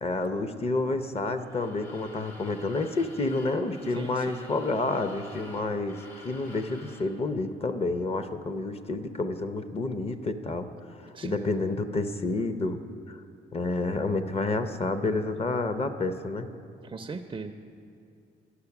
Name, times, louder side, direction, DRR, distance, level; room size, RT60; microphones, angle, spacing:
voice 1, 0.0-6.0 6.2-10.7 11.2-12.8 13.1-13.2 13.5-16.5, left 2 dB, 30° left, 10 dB, 0.6 m, -29 dB
sound 1, 1.4-7.1, left 1 dB, 85° left, 1.9 m, -49 dB
voice 2, 3.9-4.4 11.1-11.5 16.8-17.5, right 4 dB, 25° right, 6 dB, 0.4 m, -39 dB
9.6 x 6.5 x 5.9 m, 2.5 s
cardioid pair, 90°, 20 cm